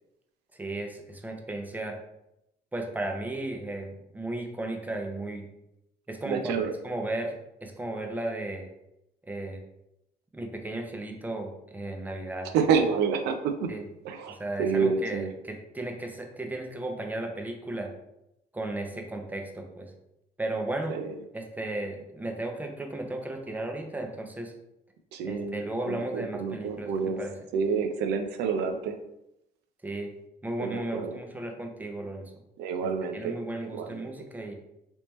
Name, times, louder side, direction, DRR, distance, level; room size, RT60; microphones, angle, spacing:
voice 1, 0.5-2.0 2.7-5.5 6.1-7.3 7.6-8.7 9.3-9.6 10.3-12.5 13.7-13.9 14.4-17.9 18.5-19.9 20.4-20.9 21.3-24.5 25.2-27.4 29.8-30.1 30.4-32.3 33.1-34.5, right 2 dB, 10° right, 3 dB, 0.6 m, -35 dB
voice 2, 6.2-6.7 12.5-13.7 14.0-15.3 20.9-21.1 25.1-27.2 27.5-29.0 30.6-31.2 32.6-34.1, right 5 dB, 85° right, 6 dB, 0.5 m, -29 dB
3.5 x 2.8 x 3.0 m, 0.85 s
cardioid pair, 110°, 17 cm